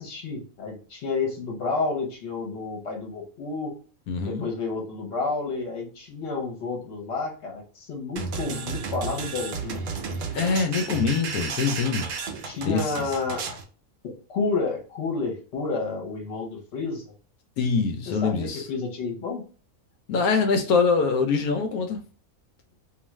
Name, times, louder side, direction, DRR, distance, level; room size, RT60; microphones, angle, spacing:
voice 1, 0.0-3.7 4.2-9.8 12.4-13.4 14.0-17.1 18.2-19.4, left 4 dB, 55° left, 1.0 m, -30 dB
voice 2, 4.1-4.5 10.3-12.1 12.6-13.1 17.6-18.7 20.1-22.0, left 5 dB, 85° left, 1.1 m, -24 dB
sound 1, 8.2-13.6, right 5 dB, 65° right, 0.9 m, -33 dB
2.6 x 2.4 x 3.0 m
omnidirectional pair, 1.5 m